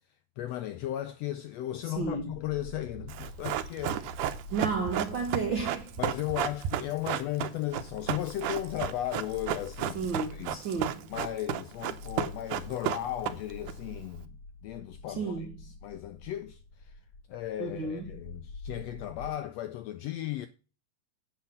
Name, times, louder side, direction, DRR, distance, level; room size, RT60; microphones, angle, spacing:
voice 1, 0.4-4.1 6.0-10.6 11.1-14.4 14.6-16.9 17.3-20.5, left 13 dB, 80° left, 1.5 m, -36 dB
sound 1, 1.9-19.4, left 2 dB, 55° left, 1.6 m, -47 dB
voice 2, 1.9-2.3 4.5-5.9 9.9-11.1 15.2-15.5 17.6-18.1, right 4 dB, 65° right, 1.2 m, -32 dB
Run, 3.1-13.7 14.0-14.1, right 11 dB, 80° right, 2.2 m, -33 dB
8.2 x 5.5 x 6.9 m
omnidirectional pair, 3.5 m